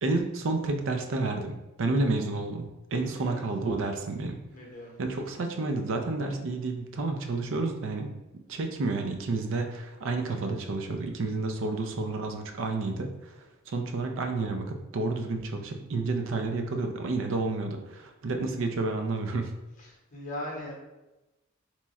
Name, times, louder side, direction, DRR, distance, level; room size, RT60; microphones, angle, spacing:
voice 1, 0.0-4.4 5.0-8.1 8.5-13.3 13.7-19.5, right 3 dB, 65° right, 5 dB, 0.4 m, -30 dB
voice 2, 3.0-3.4 4.5-4.9 19.8-20.7, left 1 dB, 40° left, -2 dB, 0.9 m, -39 dB
3.0 x 2.3 x 4.1 m, 1.0 s
head